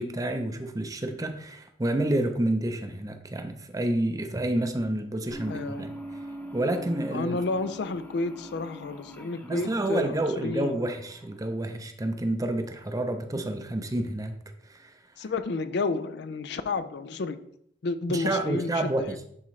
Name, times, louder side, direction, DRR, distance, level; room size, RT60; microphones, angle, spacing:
voice 1, 0.0-5.9 6.5-7.4 9.4-14.4 14.7-14.9 18.1-19.3, right 1 dB, 20° right, 7 dB, 0.6 m, -29 dB
sound 1, 5.3-11.7, right 1 dB, 10° left, 0.8 m, -42 dB
voice 2, 5.5-5.9 7.1-10.8 15.2-17.4 17.8-19.2, left 3 dB, 65° left, 12 dB, 0.4 m, -31 dB
11.0 x 3.7 x 3.2 m, 0.70 s
head